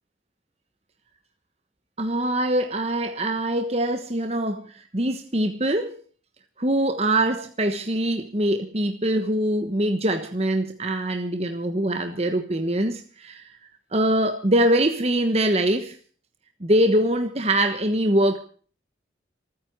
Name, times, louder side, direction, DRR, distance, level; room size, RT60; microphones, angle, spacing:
voice 1, 2.0-6.0 6.6-13.5 13.9-16.0 16.6-18.4, right 1 dB, 35° right, 1.3 m, -23 dB
27.0 x 9.8 x 4.6 m
head